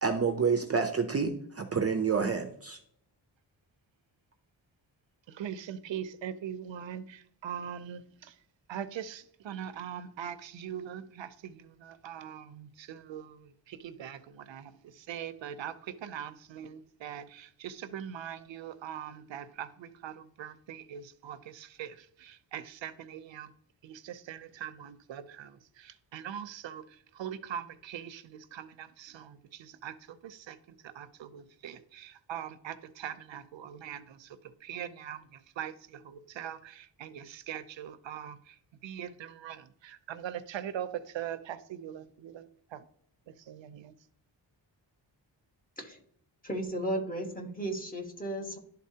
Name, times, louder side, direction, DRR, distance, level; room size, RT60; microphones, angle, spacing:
voice 1, 0.0-2.8, right 5 dB, 35° right, 0.5 m, -28 dB
voice 2, 5.4-7.0 7.4-8.0 8.7-13.3 13.8-14.2 14.5-14.7 15.1-15.7 16.0-20.1 20.4-21.9 22.5-23.5 23.8-25.5 26.1-26.8 27.2-28.2 28.5-29.3 29.8-29.9 30.2-30.5 31.0-34.0 34.7-35.2 35.6-35.7 36.4-36.6 37.0-38.4 38.8-39.6 40.1-40.9 41.1-42.4 43.5-43.9, right 9 dB, 85° right, 0.6 m, -41 dB
voice 3, 46.4-48.6, right 1 dB, 20° left, 1.2 m, -34 dB
11.5 x 4.0 x 2.8 m
wide cardioid pair, 160°, 44 cm